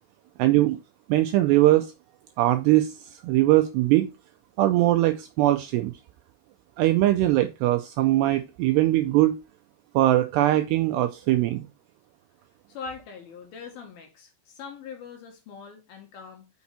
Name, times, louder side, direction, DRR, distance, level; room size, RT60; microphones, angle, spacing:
voice 1, 0.4-0.8 1.1-1.9 2.4-4.1 4.6-5.9 6.8-9.4 9.9-11.7, right 15 dB, 80° right, 2.4 m, -21 dB
voice 2, 12.7-16.5, left 5 dB, 60° left, 3.0 m, -42 dB
7.1 x 5.9 x 4.1 m
omnidirectional pair, 5.4 m